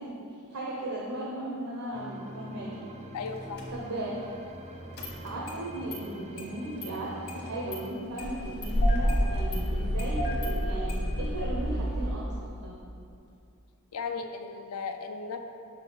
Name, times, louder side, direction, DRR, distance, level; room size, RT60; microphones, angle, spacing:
voice 1, 0.0-2.9 3.7-4.2 5.2-12.8, right 1 dB, 90° right, -3 dB, 0.8 m, -36 dB
sound 1, 1.9-7.9, right 1 dB, 30° right, 0.4 m, -44 dB
voice 2, 3.1-3.7 13.9-15.4, left 5 dB, 90° left, 6 dB, 0.5 m, -36 dB
Engine starting, 3.6-3.7 5.0-5.6 5.9-6.0 6.4-6.5 6.8-6.9 7.3-7.8 8.1-12.1, equal, 45° left, 1.0 m, -29 dB
5.6 x 4.9 x 3.9 m, 2.6 s
head